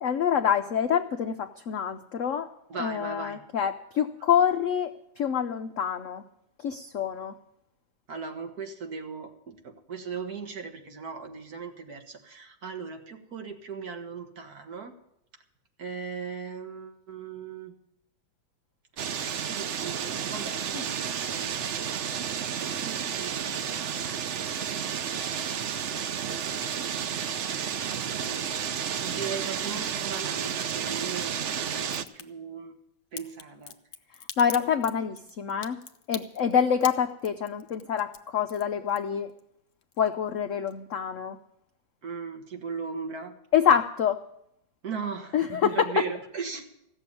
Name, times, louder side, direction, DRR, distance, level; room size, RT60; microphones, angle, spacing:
voice 1, 0.0-6.2 6.6-7.3 34.4-35.8 36.1-39.3 40.0-41.4 43.5-44.2 45.3-46.1, left 8 dB, 75° left, 7 dB, 0.7 m, -26 dB
voice 2, 2.7-3.4 8.1-14.9 15.8-17.7 19.2-21.1 21.3-21.9 22.6-24.1 25.1-25.8 28.0-28.6 29.0-32.8 33.1-33.8 42.0-43.4 44.8-46.7, right 5 dB, 55° right, 4 dB, 1.8 m, -38 dB
sound 1, 19.0-32.0, right 8 dB, 90° right, 0.6 m, -31 dB
Crack, 31.8-32.2 33.2-39.4 39.7-40.4 40.7-40.8, left 8 dB, 55° left, 1.1 m, -42 dB
15.5 x 6.9 x 9.8 m, 0.79 s
omnidirectional pair, 2.1 m